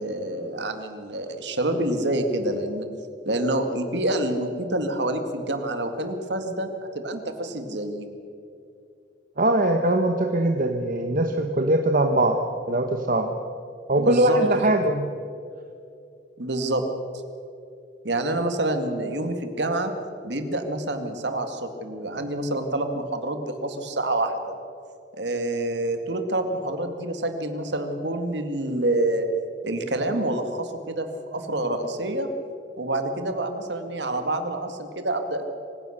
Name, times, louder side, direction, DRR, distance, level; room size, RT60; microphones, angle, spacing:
voice 1, 0.0-2.9 3.3-6.7 6.9-8.1 14.0-14.6 16.4-16.9 18.0-19.9 20.2-24.6 25.1-29.3 29.6-32.3 32.8-35.5, right 1 dB, 70° right, 7 dB, 2.1 m, -27 dB
voice 2, 9.4-12.4 12.7-13.3 13.9-15.1, right 1 dB, 50° right, 5 dB, 1.1 m, -21 dB
25.0 x 16.0 x 6.6 m, 2.6 s
head